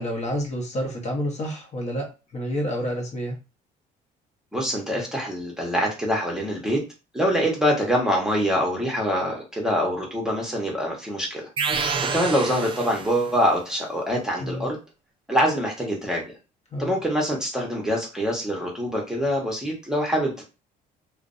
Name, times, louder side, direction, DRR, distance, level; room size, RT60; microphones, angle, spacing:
voice 1, 0.0-3.3 14.4-14.7 16.7-16.9, equal, 40° left, 1 dB, 0.8 m, -29 dB
voice 2, 4.5-6.8 7.1-11.5 12.1-14.8 15.3-16.2 16.8-20.4, equal, 5° right, -1 dB, 0.8 m, -24 dB
sound 1, 11.6-13.4, right 5 dB, 30° right, 0.4 m, -28 dB
2.5 x 2.0 x 2.5 m, 0.30 s
cardioid pair, 110°, 17 cm